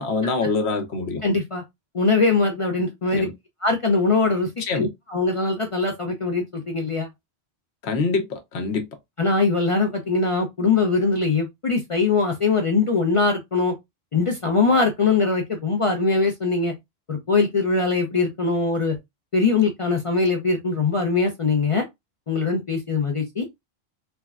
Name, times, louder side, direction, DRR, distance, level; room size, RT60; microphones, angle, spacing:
voice 1, 0.0-1.2 3.2-3.3 4.7-4.9 7.8-8.8, left 4 dB, 80° left, 1.0 m, -24 dB
voice 2, 1.2-1.6 1.9-3.3 3.6-7.1 9.2-13.7 14.1-16.7 17.1-19.0 19.3-21.8 22.3-23.6, left 4 dB, 45° left, 0.4 m, -22 dB
3.4 x 2.1 x 2.3 m
omnidirectional pair, 1.1 m